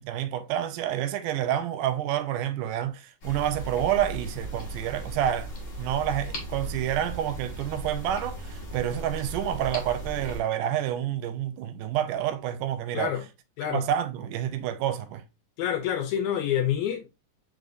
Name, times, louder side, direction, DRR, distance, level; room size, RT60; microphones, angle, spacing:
voice 1, 0.0-5.5 5.8-13.1 13.7-15.2, right 11 dB, 85° right, 2.1 m, -28 dB
sound 1, 3.2-10.4, right 1 dB, 40° left, 1.0 m, -37 dB
voice 2, 12.9-13.2 13.6-13.9 15.6-17.1, left 10 dB, 80° left, 1.8 m, -27 dB
4.9 x 3.8 x 2.5 m
omnidirectional pair, 3.8 m